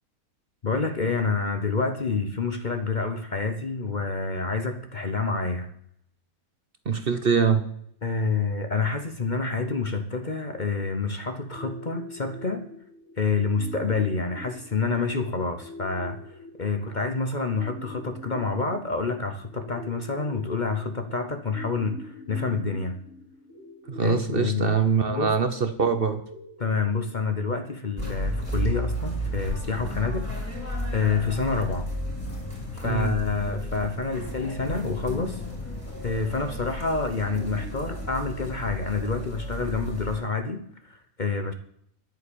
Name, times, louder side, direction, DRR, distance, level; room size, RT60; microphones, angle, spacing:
voice 1, 0.6-5.7 8.0-12.7 13.2-16.2 16.6-23.0 24.0-24.8 25.1-25.4 26.6-30.3 30.9-31.9 32.7-35.4 36.0-41.5, left 4 dB, 35° left, 8 dB, 1.0 m, -28 dB
voice 2, 6.9-7.6 23.9-26.2 32.8-33.2, right 6 dB, 45° right, 10 dB, 1.0 m, -23 dB
sound 1, 11.5-27.5, left 1 dB, 60° left, 3.7 m, -44 dB
sound 2, 28.0-40.2, equal, 10° left, 4.6 m, -33 dB
10.5 x 9.2 x 8.6 m, 0.68 s
omnidirectional pair, 1.5 m